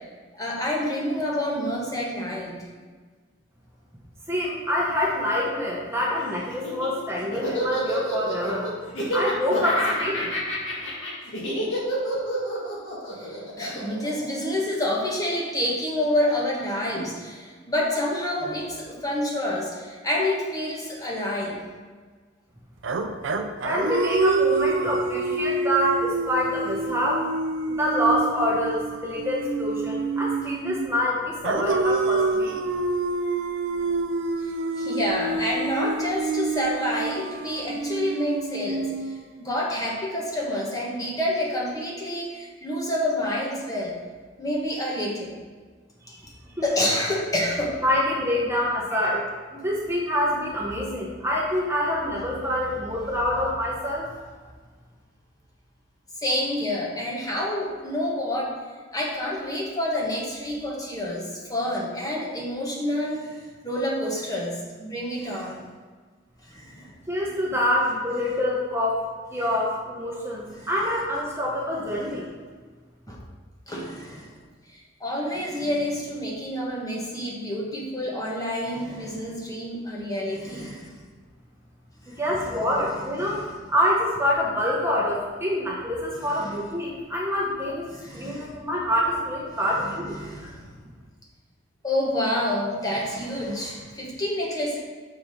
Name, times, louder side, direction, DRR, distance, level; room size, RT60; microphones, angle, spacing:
voice 1, 0.3-2.6 13.2-21.6 34.4-44.0 44.4-45.3 46.6-47.8 56.2-58.5 58.9-65.6 66.4-66.9 70.6-70.7 71.9-72.2 73.1-73.2 73.7-74.4 74.7-81.0 82.0-82.2 83.2-83.5 86.2-86.6 87.9-88.5 89.8-90.7 91.8-94.8, left 1 dB, 20° left, -3 dB, 1.2 m, -28 dB
voice 2, 4.3-10.3 23.6-27.2 27.7-32.6 46.0-46.3 46.5-46.7 47.8-54.1 67.1-72.2 82.1-90.1, left 1 dB, 15° right, -4 dB, 0.9 m, -26 dB
Laughter, 6.5-14.9, equal, 80° left, 1.8 m, -29 dB
sound 1, 22.8-30.9 31.4-39.5, right 3 dB, 70° right, 0.5 m, -27 dB
6.0 x 4.6 x 5.1 m, 1.5 s
head